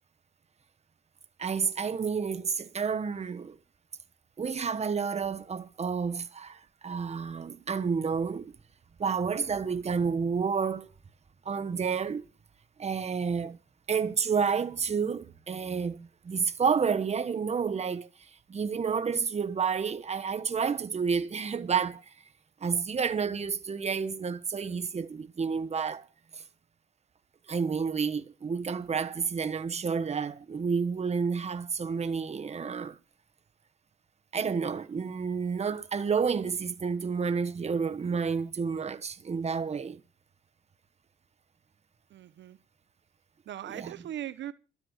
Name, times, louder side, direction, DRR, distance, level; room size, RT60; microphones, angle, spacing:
voice 1, 1.4-3.6 4.4-8.6 9.0-10.9 11.4-12.3 12.8-13.6 13.9-18.1 18.5-22.1 22.6-26.1 26.3-26.4 27.5-33.0 34.3-40.0 43.6-43.9, right 6 dB, 35° right, 1.1 m, -30 dB
voice 2, 42.1-42.6 43.5-44.5, right 11 dB, 65° right, 0.8 m, -39 dB
12.5 x 11.0 x 6.4 m
cardioid pair, 90°, 20 cm